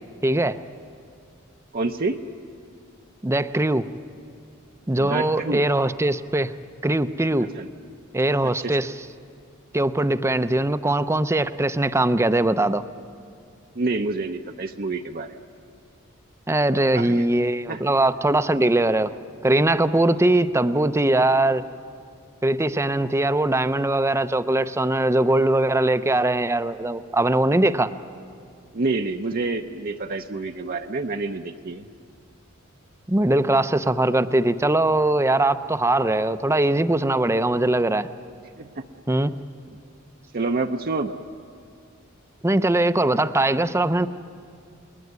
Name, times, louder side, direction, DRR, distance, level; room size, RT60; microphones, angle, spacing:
voice 1, 0.2-0.6 3.2-3.8 4.9-6.5 6.8-7.5 8.1-8.9 9.7-12.8 16.5-19.1 19.4-21.6 22.4-27.9 33.1-38.1 39.1-39.3 42.4-44.1, right 1 dB, 15° right, 12 dB, 0.6 m, -21 dB
voice 2, 1.7-2.2 5.0-5.7 7.4-7.7 8.4-8.8 13.7-15.4 16.9-17.3 17.7-17.8 28.7-31.9 38.6-38.8 40.3-41.1, right 3 dB, 45° right, 4 dB, 0.8 m, -28 dB
30.0 x 21.0 x 9.5 m, 2.4 s
head